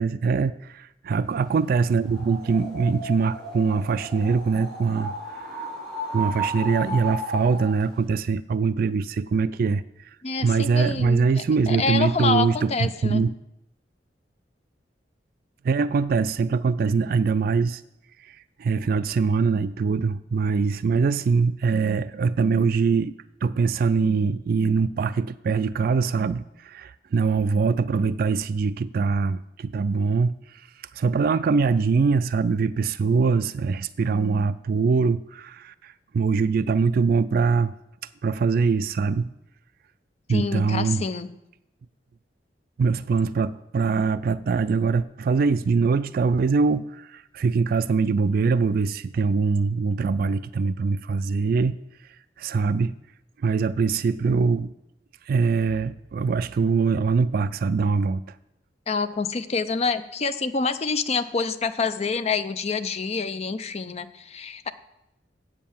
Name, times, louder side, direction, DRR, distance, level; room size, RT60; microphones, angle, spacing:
voice 1, 0.0-5.7 6.1-9.8 10.4-13.3 15.6-17.8 18.3-23.1 23.4-30.4 30.9-37.7 38.2-39.3 40.3-41.0 42.8-51.8 52.4-53.0 53.4-54.7 55.3-58.2, right 5 dB, 55° right, 15 dB, 0.3 m, -23 dB
sound 1, 2.0-7.8, right 2 dB, ahead, 4.0 m, -34 dB
voice 2, 10.2-13.2 40.3-41.3 58.9-64.7, left 4 dB, 35° left, 11 dB, 0.5 m, -27 dB
8.2 x 7.5 x 7.0 m, 0.89 s
head